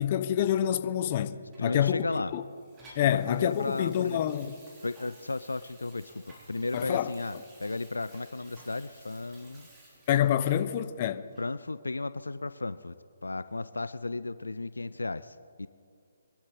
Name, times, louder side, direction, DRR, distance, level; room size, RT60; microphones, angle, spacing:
voice 1, 0.0-2.1 2.3-2.4 3.0-4.6 6.7-7.1 10.1-11.2, left 10 dB, 35° left, 0.8 m, -27 dB
Water tap faucet / Sink (filling or washing), 1.5-10.8 11.3-11.5, right 1 dB, 20° right, 3.9 m, -55 dB
voice 2, 1.6-2.3 3.0-4.2 4.8-9.7 11.4-12.9 13.2-15.7, left 3 dB, 85° left, 0.5 m, -34 dB
23.5 x 12.0 x 4.2 m
figure-of-eight pair, 140°, 0 cm